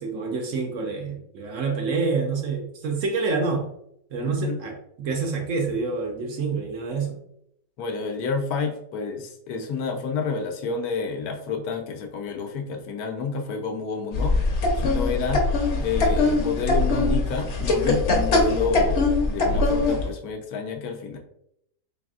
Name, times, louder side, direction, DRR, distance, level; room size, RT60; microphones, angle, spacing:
voice 1, 0.0-3.7 4.1-7.2, right 4 dB, 65° right, 3 dB, 0.8 m, -27 dB
voice 2, 4.2-4.6 7.8-14.4 14.8-15.5 15.8-21.2, left 5 dB, 75° left, 4 dB, 1.1 m, -29 dB
sound 1, 14.1-20.1, left 2 dB, 55° left, 0.9 m, -22 dB
4.0 x 3.4 x 2.4 m, 0.74 s
omnidirectional pair, 1.6 m